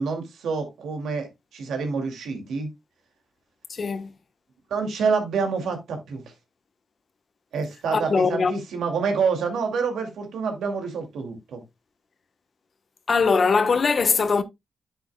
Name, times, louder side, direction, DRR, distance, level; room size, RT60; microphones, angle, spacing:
voice 1, 0.0-2.7 4.7-6.2 7.5-11.6, right 5 dB, 90° right, 2.3 m, -27 dB
voice 2, 3.7-4.1 7.9-8.5 13.1-14.4, left 5 dB, 45° left, 1.0 m, -21 dB
9.6 x 7.8 x 2.2 m
cardioid pair, 110°, 0 cm